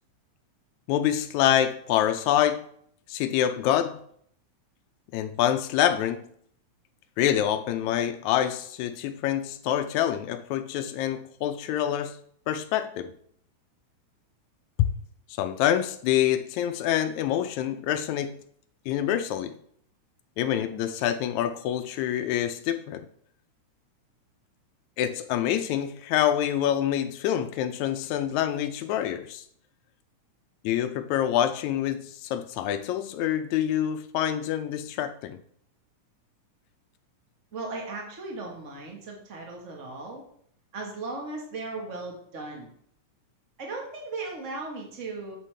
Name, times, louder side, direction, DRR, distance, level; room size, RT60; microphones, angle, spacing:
voice 1, 0.9-2.6 3.1-4.0 5.1-6.3 7.2-12.2 12.5-13.1 14.8-14.9 15.4-18.4 18.9-19.6 20.4-23.1 25.0-29.4 30.6-35.4, left 11 dB, 80° left, 1.8 m, -26 dB
voice 2, 37.5-40.2 40.7-42.7 43.6-45.3, right 3 dB, 55° right, 0.8 m, -37 dB
8.5 x 8.3 x 3.3 m
omnidirectional pair, 3.6 m